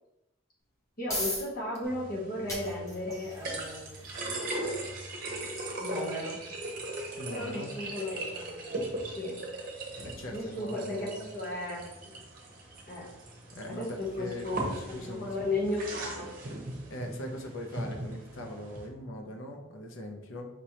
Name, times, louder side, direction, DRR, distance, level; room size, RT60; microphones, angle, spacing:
sound 1, 0.6-15.5, left 1 dB, 15° left, 0.8 m, -45 dB
voice 1, 1.0-4.0 5.8-6.4 7.3-9.4 10.3-12.2 12.9-13.1 13.6-16.4, left 1 dB, 45° left, -5 dB, 1.1 m, -35 dB
sound 2, 1.8-18.9, right 1 dB, 45° right, 0.8 m, -39 dB
voice 2, 7.2-7.7 10.0-11.3 13.5-15.4 16.9-20.5, left 1 dB, 75° left, 3 dB, 0.7 m, -41 dB
5.1 x 3.2 x 2.9 m, 0.93 s
head